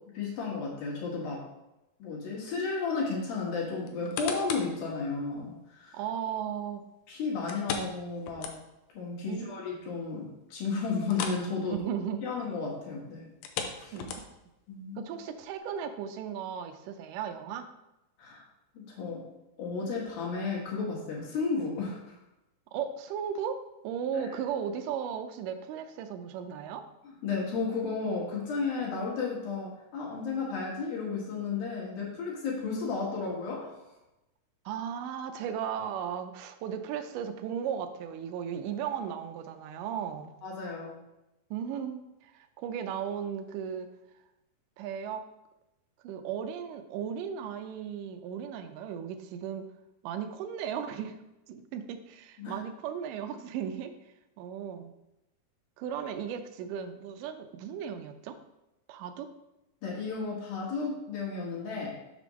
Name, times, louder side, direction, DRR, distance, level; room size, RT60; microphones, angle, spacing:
voice 1, 0.1-1.5 2.0-6.0 7.1-8.5 8.9-11.8 12.2-13.3 13.8-13.9 14.7-15.1 18.2-18.4 18.7-19.2 19.6-22.2 24.1-24.3 27.0-33.9 40.4-41.0 52.4-52.6 59.8-61.9, left 4 dB, 70° left, -3 dB, 3.3 m, -33 dB
sound 1, 3.9-4.8 5.3-5.4 7.5-8.9 9.3-9.4 9.8-9.9 11.0-11.5 11.8-12.0 13.3-14.5 15.2-15.3, left 6 dB, 85° left, 2.6 m, -37 dB
voice 2, 5.9-6.8 9.3-9.6 11.6-12.2 13.9-14.1 15.0-17.7 22.7-26.9 34.7-40.3 41.5-43.9 44.8-45.2 46.0-49.7 50.0-51.2 51.5-53.9 54.4-54.9 55.8-58.4 58.9-59.3, right 8 dB, 85° right, 7 dB, 1.9 m, -36 dB
6.6 x 3.5 x 6.2 m, 0.93 s
omnidirectional pair, 4.4 m